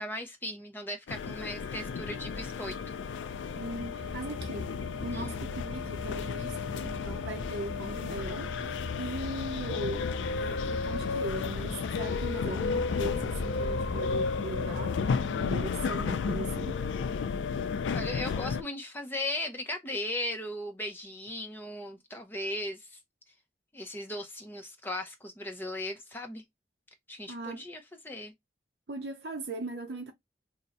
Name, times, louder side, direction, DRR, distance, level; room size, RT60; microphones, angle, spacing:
voice 1, 0.0-3.0 5.1-5.4 17.9-23.0 23.7-26.4 27.1-28.3, left 1 dB, 10° left, 0.6 m, -37 dB
sound 1, 1.1-18.6, left 5 dB, 85° left, 0.3 m, -33 dB
voice 2, 3.6-4.7 5.0-15.0 15.3-16.8 27.3-27.6 28.9-30.1, right 2 dB, 65° right, 0.6 m, -39 dB
sound 2, 3.7-15.3, left 2 dB, 35° right, 1.1 m, -41 dB
2.6 x 2.1 x 3.9 m
head